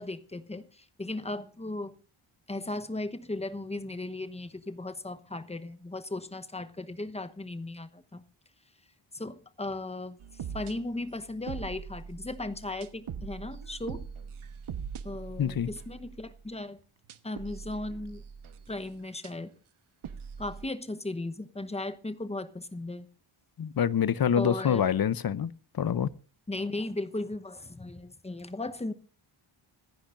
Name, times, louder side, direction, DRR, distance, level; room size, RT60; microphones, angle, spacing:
voice 1, 0.0-1.9 2.5-8.2 9.1-10.2 10.5-14.1 15.0-16.8 17.2-18.2 18.7-19.5 20.4-23.1 24.4-24.9 26.5-28.9, left 2 dB, 15° left, 0.9 m, -36 dB
sound 1, 10.2-16.4 17.0-18.8 19.2-19.3 20.0-20.6, right 6 dB, 75° right, 1.2 m, -42 dB
voice 2, 15.4-15.7 23.6-26.1, left 8 dB, 45° left, 0.7 m, -26 dB
25.5 x 10.0 x 2.5 m
wide cardioid pair, 170°, 49 cm